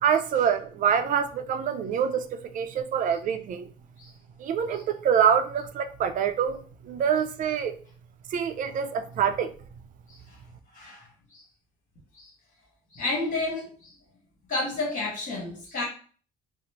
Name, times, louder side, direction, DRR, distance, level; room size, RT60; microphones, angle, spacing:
voice 1, 0.0-2.2 2.5-3.7 4.4-6.6 6.8-7.7 8.3-9.5, right 8 dB, 50° right, 9 dB, 0.4 m, -25 dB
voice 2, 10.7-11.4 12.1-12.3 12.9-13.9 14.5-15.8, left 2 dB, 50° left, -1 dB, 1.6 m, -31 dB
3.9 x 2.0 x 3.0 m, 0.42 s
cardioid pair, 110°, 17 cm